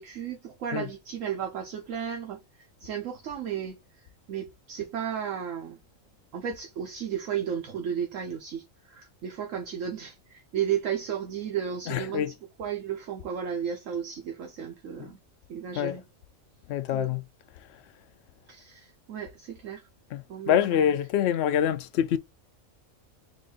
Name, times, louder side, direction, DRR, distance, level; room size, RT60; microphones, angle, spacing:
voice 1, 0.0-2.4 2.8-3.8 4.3-5.8 6.3-15.2 15.5-16.0 16.9-17.1 18.5-19.8 20.3-20.8, right 8 dB, 70° right, 1.1 m, -34 dB
voice 2, 11.9-12.3 15.0-15.1 15.8-16.0 16.7-17.2 20.1-22.2, left 9 dB, 65° left, 0.7 m, -26 dB
4.0 x 2.6 x 3.8 m
omnidirectional pair, 1.4 m